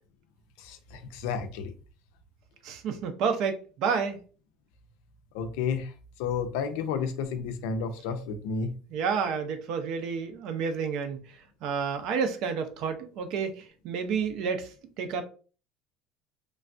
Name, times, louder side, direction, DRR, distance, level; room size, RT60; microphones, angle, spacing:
voice 1, 0.6-1.7 5.3-5.9 6.2-8.7, left 5 dB, 85° left, 0.5 m, -31 dB
voice 2, 2.6-4.2 8.9-11.2 11.6-13.5 13.8-14.7 15.0-15.2, right 6 dB, 55° right, 0.5 m, -29 dB
3.2 x 2.3 x 2.5 m
cardioid pair, 155°, 0 cm